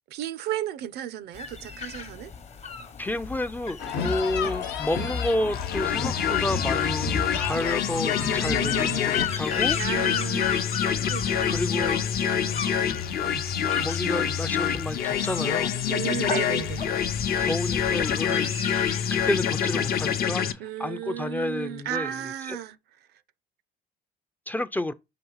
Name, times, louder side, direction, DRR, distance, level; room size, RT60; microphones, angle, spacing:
voice 1, 0.1-2.3 8.3-9.2 9.7-13.7 15.9-16.9 20.6-22.8 23.1-23.2, right 11 dB, 70° right, 0.5 m, -35 dB
sound 1, 1.3-20.2, left 7 dB, 40° left, 0.9 m, -36 dB
voice 2, 3.0-9.8 11.5-12.0 13.8-15.7 17.4-18.6 19.1-22.1 22.5-22.6 24.5-24.9, left 1 dB, 10° left, 0.4 m, -30 dB
sound 2, 3.8-9.3, left 6 dB, 80° left, 1.0 m, -32 dB
sound 3, 5.5-20.5, left 8 dB, 65° left, 0.7 m, -26 dB
5.8 x 3.1 x 5.5 m
cardioid pair, 110°, 17 cm